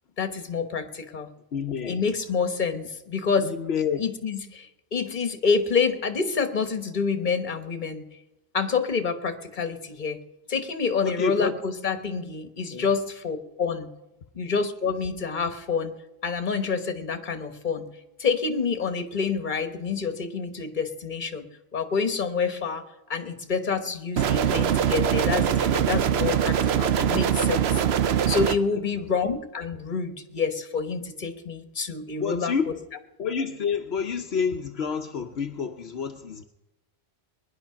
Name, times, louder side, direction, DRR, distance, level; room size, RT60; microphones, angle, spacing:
voice 1, 0.2-1.3 1.9-3.5 4.0-8.0 8.5-10.2 10.5-13.9 14.3-15.9 16.2-17.8 18.2-21.5 21.7-22.8 23.1-27.8 28.3-32.5, left 5 dB, 50° left, 8 dB, 1.4 m, -27 dB
voice 2, 1.5-2.0 3.4-4.0 11.0-11.6 12.7-12.9 28.7-29.0 32.2-32.7 33.2-36.4, left 6 dB, 75° left, 4 dB, 1.0 m, -29 dB
sound 1, 24.2-28.6, right 9 dB, 75° right, 0.9 m, -23 dB
20.5 x 11.0 x 5.8 m, 0.95 s
omnidirectional pair, 1.1 m